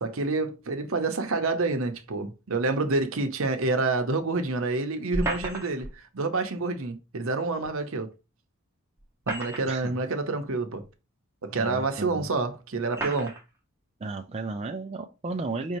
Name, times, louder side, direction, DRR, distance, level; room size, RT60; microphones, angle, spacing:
voice 1, 0.0-8.1 9.3-10.8 11.4-13.3, right 3 dB, 65° right, 0.7 m, -28 dB
sound 1, 5.1-5.9 7.6-7.7 9.0-9.9 10.8-10.9 11.9-12.0 12.9-13.4, right 1 dB, 10° right, 0.8 m, -33 dB
voice 2, 11.6-12.3 14.0-15.8, right 3 dB, 30° right, 0.3 m, -34 dB
5.4 x 2.7 x 3.0 m
head